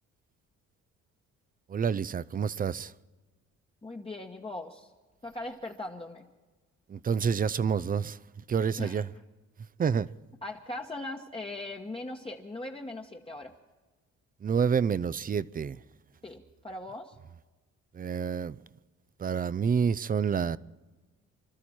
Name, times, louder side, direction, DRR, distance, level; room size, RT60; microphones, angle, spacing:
voice 1, 1.7-2.9 6.9-8.2 8.5-9.1 9.8-10.1 14.4-15.8 17.9-18.6 19.2-20.6, right 6 dB, 30° right, 0.5 m, -28 dB
voice 2, 3.8-4.9 5.2-6.3 8.8-9.0 10.4-13.5 16.2-17.1, left 2 dB, 20° left, 1.2 m, -39 dB
25.5 x 12.5 x 4.3 m
cardioid pair, 90°, 30 cm